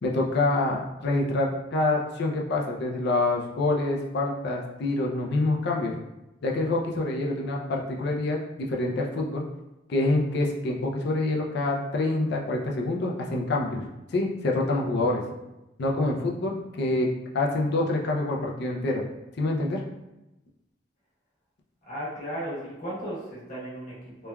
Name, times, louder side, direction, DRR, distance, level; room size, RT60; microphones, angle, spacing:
voice 1, 0.0-5.9 6.4-9.4 9.9-15.2 15.8-19.0 19.4-19.8, left 2 dB, 60° left, -1 dB, 0.4 m, -26 dB
voice 2, 21.8-24.3, equal, 45° left, -8 dB, 1.1 m, -35 dB
3.1 x 2.2 x 2.2 m, 0.96 s
head